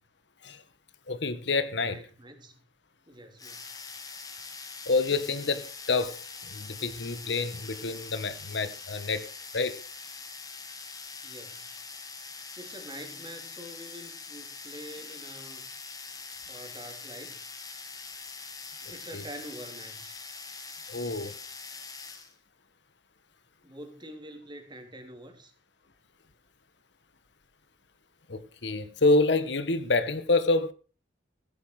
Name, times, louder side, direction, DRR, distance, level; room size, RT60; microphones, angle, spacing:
voice 1, 1.1-2.0 4.9-6.2 6.5-9.8 19.1-19.2 20.9-21.3 28.3-30.7, left 3 dB, 65° left, 1.4 m, -27 dB
voice 2, 1.8-2.6 3.1-3.7 11.2-11.7 12.6-15.7 16.5-17.4 18.8-20.1 23.6-25.5, right 1 dB, 25° right, 3.5 m, -46 dB
sound 1, 3.4-22.3, left 4 dB, 20° left, 2.2 m, -43 dB
16.0 x 11.5 x 4.9 m
head